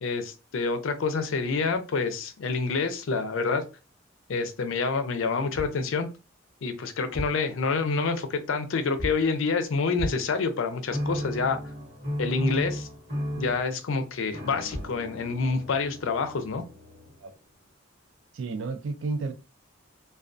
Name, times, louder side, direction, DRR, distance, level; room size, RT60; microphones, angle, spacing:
voice 1, 0.0-3.6 4.3-6.1 6.6-11.6 12.2-12.9 13.4-16.6, left 4 dB, 70° left, 0.4 m, -27 dB
sound 1, 5.5-5.9 7.0-7.5 9.0-9.4 10.0-10.4 14.4-14.5 14.7-15.0, equal, 5° left, 0.4 m, -36 dB
sound 2, 10.9-17.4, equal, 40° right, 1.2 m, -35 dB
voice 2, 18.3-19.3, right 3 dB, 70° right, 0.4 m, -31 dB
2.2 x 2.2 x 2.5 m
head